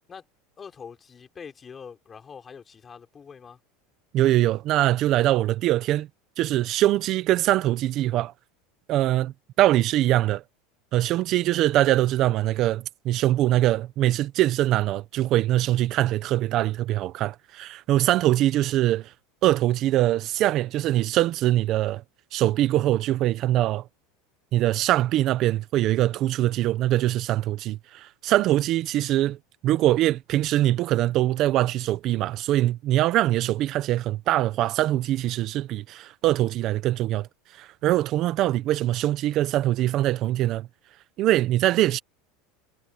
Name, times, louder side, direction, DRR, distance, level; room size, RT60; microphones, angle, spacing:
voice 1, 0.6-3.6, left 6 dB, 20° left, 3.4 m, -44 dB
voice 2, 4.1-6.1 6.4-8.3 8.9-10.4 10.9-19.1 19.4-22.0 22.3-23.8 24.5-29.4 29.6-37.3 37.5-40.7 41.2-42.0, right 14 dB, 45° right, 0.8 m, -23 dB
supercardioid pair, 140°, 0 cm